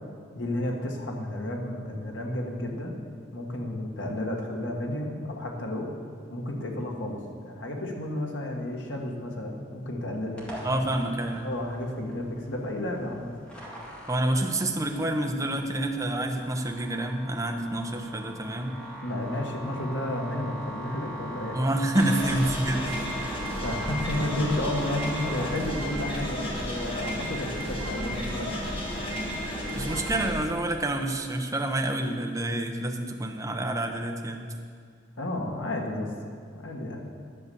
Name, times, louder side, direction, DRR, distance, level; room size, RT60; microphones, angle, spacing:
voice 1, 0.3-3.0 3.3-5.9 6.3-7.2 7.5-10.5 11.4-13.3 19.0-21.6 22.7-28.5 35.2-36.1 36.5-37.0, left 1 dB, 85° left, 0 dB, 1.6 m, -32 dB
sound 1, 10.4-25.5, right 1 dB, 5° left, 2.0 m, -42 dB
voice 2, 10.6-11.5 14.1-18.8 21.5-23.0 29.7-34.4, right 1 dB, 15° right, 2 dB, 0.7 m, -28 dB
sound 2, 21.9-30.3, equal, 30° left, 1.7 m, -32 dB
11.0 x 6.8 x 6.9 m, 2.1 s
head